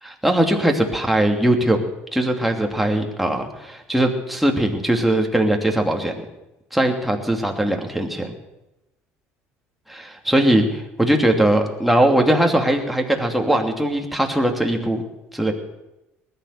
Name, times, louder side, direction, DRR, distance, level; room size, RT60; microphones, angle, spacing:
voice 1, 0.0-1.8 2.1-6.2 6.7-8.3 9.9-15.0 15.3-15.5, right 1 dB, ahead, 2 dB, 2.7 m, -20 dB
19.5 x 10.0 x 6.8 m, 0.95 s
hypercardioid pair, 60°, 7 cm